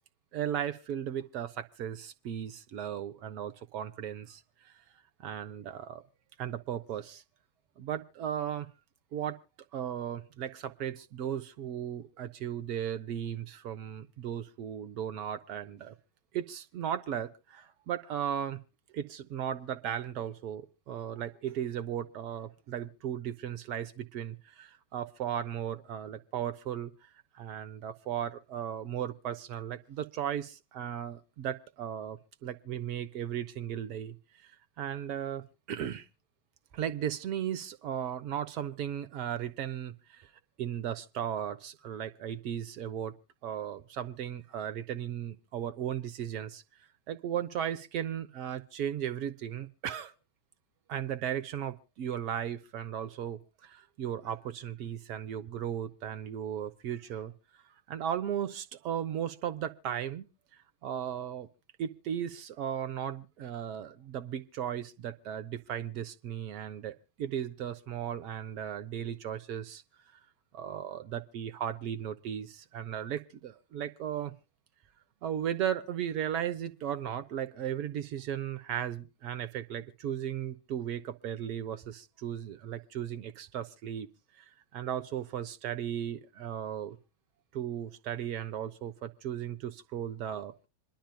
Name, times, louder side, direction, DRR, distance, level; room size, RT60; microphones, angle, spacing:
voice 1, 0.3-4.7 5.2-6.0 6.4-7.2 7.8-8.7 9.1-9.4 9.7-15.9 16.3-18.6 18.9-26.9 27.3-34.2 34.8-36.1 36.7-40.3 40.6-43.1 43.4-46.6 47.1-50.1 50.9-57.3 57.9-60.3 60.8-61.5 61.8-69.8 70.5-74.3 75.2-84.1 84.4-84.5 84.7-87.0 87.5-90.5, right 9 dB, 40° right, 0.7 m, -36 dB
27.0 x 11.5 x 2.2 m
figure-of-eight pair, 90°, 0 cm